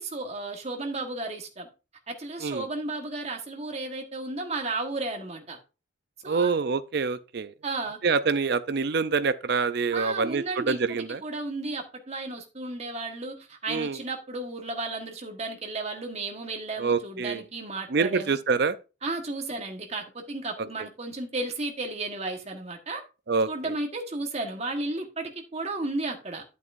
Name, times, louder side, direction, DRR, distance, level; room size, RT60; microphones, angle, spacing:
voice 1, 0.0-1.7 2.1-5.6 6.2-6.5 7.6-8.0 9.9-18.4 19.0-23.0 23.4-26.4, right 2 dB, 35° right, 1.4 m, -33 dB
voice 2, 6.3-7.5 8.0-11.2 13.7-14.0 16.8-17.4 17.9-18.8 23.3-23.7, right 4 dB, 55° right, 0.5 m, -26 dB
9.4 x 8.2 x 2.6 m
head